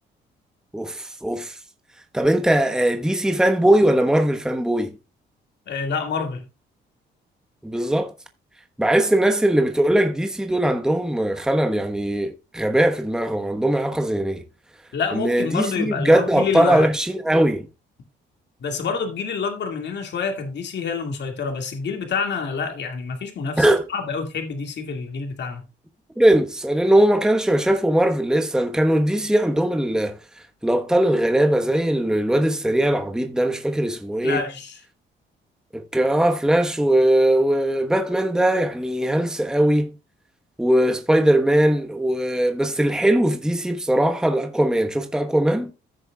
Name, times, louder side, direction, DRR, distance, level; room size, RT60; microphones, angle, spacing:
voice 1, 0.7-1.5 2.1-4.9 7.6-8.1 8.8-14.4 15.1-17.7 23.6-23.9 26.2-30.2 30.6-34.4 35.7-39.9 40.6-45.7, right 1 dB, 5° right, 1.1 m, -20 dB
voice 2, 5.7-6.4 14.9-16.9 18.6-25.6 34.2-34.8, left 5 dB, 60° left, 2.2 m, -27 dB
15.5 x 6.6 x 2.3 m
cardioid pair, 90°, 20 cm